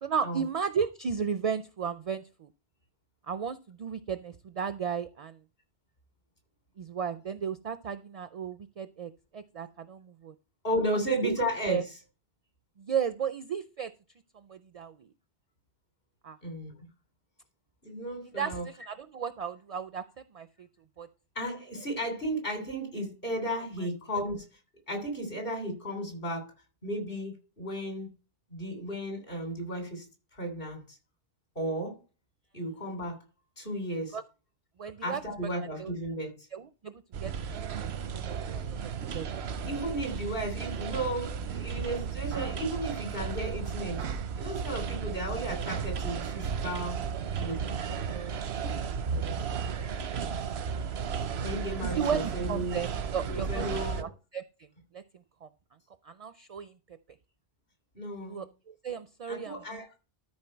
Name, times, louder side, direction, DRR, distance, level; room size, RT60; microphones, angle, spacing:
voice 1, 0.0-2.5 3.3-5.3 6.8-10.3 11.1-11.4 11.7-11.8 12.8-13.9 14.5-14.9 16.2-16.4 18.4-20.0 20.3-20.5 21.0-21.1 34.1-34.2 34.8-35.2 35.8-35.9 36.5-38.6 39.1-39.3 48.1-48.5 52.0-52.9 53.1-54.4 54.9-55.0 55.4-55.5 56.1-56.7 58.2-59.8, right 7 dB, 50° right, 12 dB, 0.5 m, -34 dB
voice 2, 10.6-12.0 16.4-16.7 17.8-18.7 21.3-24.4 24.9-26.5 26.8-28.1 28.5-30.0 30.3-31.0 31.5-31.9 32.5-33.2 33.6-34.2 35.0-36.3 39.6-44.0 44.4-47.0 47.4-47.6 51.2-52.8 53.2-54.1 57.9-58.4 59.3-59.9, right 1 dB, 60° left, 4 dB, 3.4 m, -34 dB
sound 1, 37.1-54.0, right 6 dB, 85° right, 1.0 m, -34 dB
13.0 x 4.5 x 4.4 m, 0.33 s
omnidirectional pair, 1.0 m